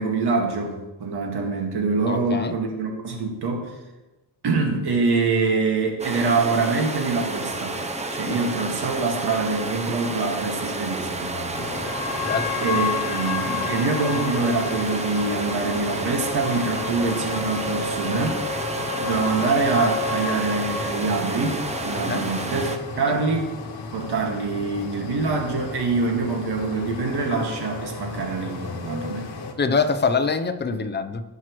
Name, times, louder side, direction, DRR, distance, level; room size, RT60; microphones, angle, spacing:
voice 1, 0.0-3.7 4.4-7.8 8.1-11.8 12.6-18.5 19.0-23.5 23.9-29.3, right 4 dB, 65° right, 1 dB, 2.0 m, -25 dB
voice 2, 2.1-2.6 8.3-8.4 12.2-12.5 22.1-22.3 23.1-23.2 29.6-31.2, left 4 dB, 25° left, 8 dB, 0.7 m, -24 dB
sound 1, 6.0-22.8, right 2 dB, 15° right, 0.7 m, -31 dB
sound 2, 11.5-29.5, left 4 dB, 65° left, 1.5 m, -32 dB
17.5 x 6.1 x 3.1 m, 1.1 s
cardioid pair, 130°, 42 cm